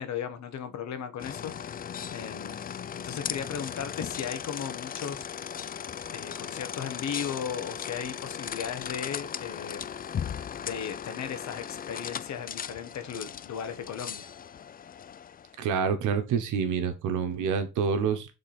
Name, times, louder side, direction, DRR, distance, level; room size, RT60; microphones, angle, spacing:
voice 1, 0.0-1.8 2.1-5.3 6.1-9.9 10.6-14.3, left 8 dB, 65° left, 1.3 m, -36 dB
sound 1, 1.2-15.6, left 8 dB, 30° left, 0.4 m, -37 dB
voice 2, 15.6-18.3, right 6 dB, 85° right, 1.2 m, -27 dB
6.5 x 3.7 x 4.2 m
cardioid pair, 90°, 30 cm